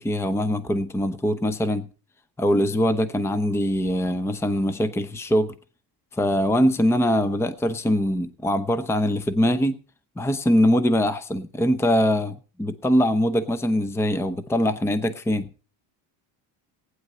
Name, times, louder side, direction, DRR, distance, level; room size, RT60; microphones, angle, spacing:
voice 1, 0.0-1.9 2.4-5.5 6.1-9.8 10.2-15.5, equal, 5° left, 0.8 m, -22 dB
15.5 x 9.7 x 5.4 m
cardioid pair, 130°, 44 cm